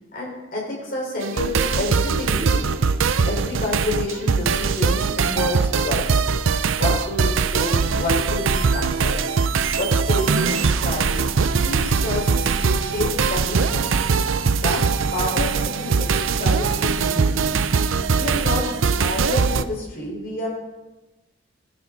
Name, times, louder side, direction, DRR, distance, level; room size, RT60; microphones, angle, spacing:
voice 1, 0.1-2.7 3.2-6.3 6.8-9.3 9.7-11.2 11.6-14.1 14.5-14.8 15.1-17.6 18.1-18.7 19.0-20.5, left 1 dB, 50° left, -2 dB, 4.4 m, -29 dB
sound 1, 1.2-19.6, right 5 dB, 85° right, 0.6 m, -21 dB
19.5 x 10.5 x 4.0 m, 1.1 s
head